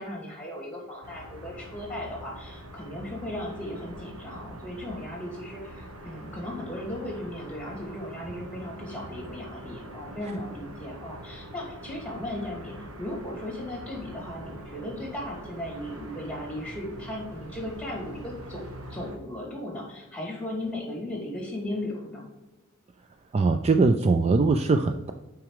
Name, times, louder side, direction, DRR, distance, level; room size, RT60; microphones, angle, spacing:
voice 1, 0.0-18.6 18.9-22.2, left 1 dB, 5° left, -1 dB, 2.4 m, -36 dB
sound 1, 1.0-19.2, right 1 dB, 85° right, 1.3 m, -43 dB
voice 2, 23.3-25.1, right 3 dB, 30° right, 7 dB, 0.3 m, -21 dB
6.2 x 4.8 x 5.0 m, 1.1 s
head